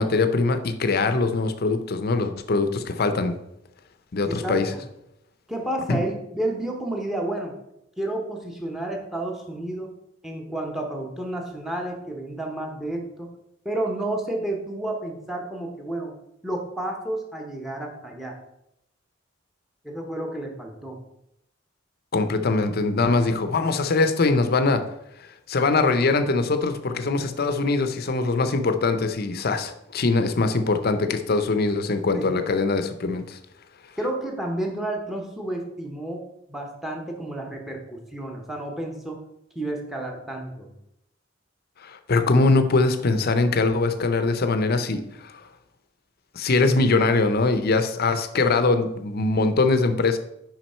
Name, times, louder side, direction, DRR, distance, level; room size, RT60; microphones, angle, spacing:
voice 1, 0.0-3.4 4.1-4.7 5.9-6.0 22.1-24.8 25.5-33.4 41.8-45.4 46.3-50.2, left 3 dB, 50° left, 9 dB, 0.6 m, -22 dB
voice 2, 4.3-4.8 5.5-7.5 8.0-9.9 10.2-13.3 13.6-16.1 16.4-18.4 19.8-21.0 32.1-32.4 34.0-36.2 36.5-39.2 39.5-40.7, right 1 dB, ahead, 2 dB, 1.0 m, -31 dB
6.1 x 5.2 x 4.3 m, 0.83 s
head